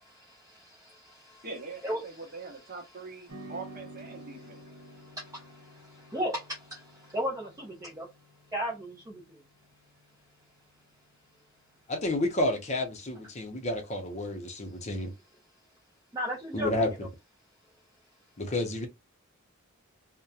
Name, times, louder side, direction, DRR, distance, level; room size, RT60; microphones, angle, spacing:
voice 1, 0.0-1.5 1.8-2.0 4.4-4.5 4.8-8.1 8.5-9.4 16.1-17.0, equal, 15° right, 0.5 m, -36 dB
voice 2, 1.4-4.6, right 3 dB, 40° right, 0.8 m, -43 dB
sound 1, 3.3-11.8, right 1 dB, 70° right, 1.0 m, -51 dB
voice 3, 11.9-15.1 16.5-16.9 18.4-18.9, left 1 dB, 30° left, 0.6 m, -30 dB
2.8 x 2.1 x 2.3 m
head